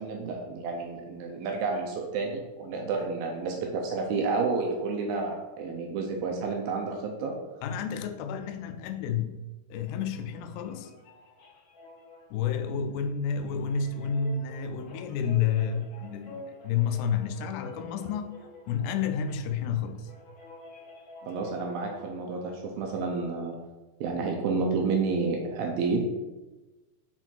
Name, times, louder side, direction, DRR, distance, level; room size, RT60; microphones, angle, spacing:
voice 1, 0.0-7.3 21.3-23.6 24.0-26.1, right 4 dB, 80° right, 1 dB, 2.2 m, -30 dB
voice 2, 7.6-9.4 9.7-10.9 12.3-20.1 21.2-21.4, left 7 dB, 80° left, 8 dB, 2.7 m, -30 dB
sound 1, 10.0-22.1, left 2 dB, 65° left, 2.1 m, -49 dB
6.6 x 4.4 x 4.4 m, 1.1 s
omnidirectional pair, 5.0 m